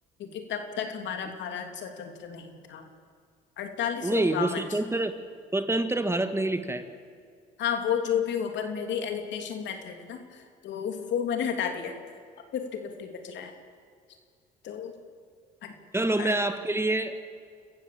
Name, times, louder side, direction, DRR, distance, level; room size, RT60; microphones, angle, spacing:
voice 1, 0.2-2.9 3.6-4.6 7.6-12.0 12.5-13.5 14.6-15.0 15.6-15.7 16.2-16.3, left 8 dB, 70° left, 5 dB, 2.8 m, -32 dB
voice 2, 4.0-5.2 5.5-6.9 15.9-17.3, right 2 dB, 15° right, 8 dB, 1.7 m, -27 dB
26.5 x 14.5 x 7.6 m, 2.2 s
supercardioid pair, 80°, 20 cm